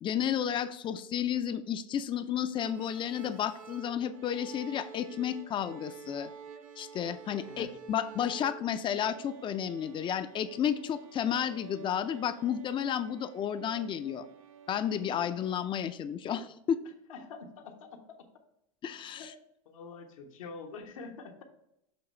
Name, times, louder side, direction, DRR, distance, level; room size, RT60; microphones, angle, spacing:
voice 1, 0.0-6.3 6.8-14.3 14.7-16.8 18.8-19.3, left 9 dB, 30° left, 11 dB, 0.5 m, -32 dB
sound 1, 2.5-15.7, right 7 dB, 80° right, 0.7 m, -50 dB
voice 2, 17.1-18.0 19.2-19.4 19.6-21.4, left 4 dB, 80° left, 3 dB, 1.2 m, -45 dB
7.0 x 3.0 x 5.4 m, 0.79 s
hypercardioid pair, 105°, 17 cm